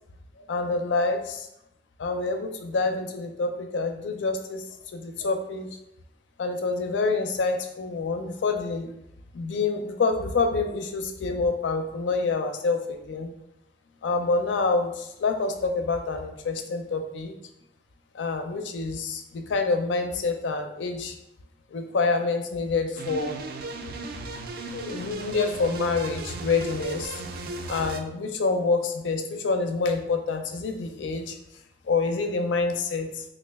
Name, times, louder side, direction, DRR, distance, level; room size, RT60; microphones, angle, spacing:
voice 1, 0.5-1.5 2.0-4.7 4.9-5.7 6.4-8.9 9.3-13.3 14.0-17.3 18.1-21.1 21.7-23.4 24.7-27.2 27.7-31.4 31.9-33.2, left 4 dB, 85° left, 5 dB, 0.4 m, -27 dB
sound 1, 23.0-28.0, right 2 dB, 55° right, 0.3 m, -36 dB
3.1 x 2.4 x 3.4 m, 0.82 s
head